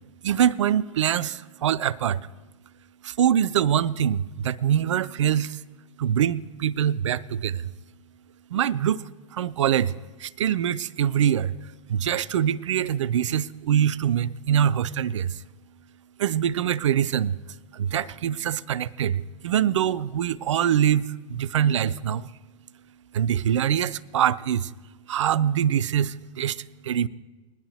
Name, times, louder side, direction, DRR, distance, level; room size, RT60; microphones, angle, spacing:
voice 1, 0.2-2.2 3.0-5.6 6.0-7.7 8.5-9.0 9.3-9.9 10.2-11.6 11.9-15.4 16.2-17.4 17.7-22.3 23.1-24.7 25.1-27.1, right 9 dB, 65° right, 0.4 m, -24 dB
20.0 x 10.5 x 3.3 m
figure-of-eight pair, 90°, 17 cm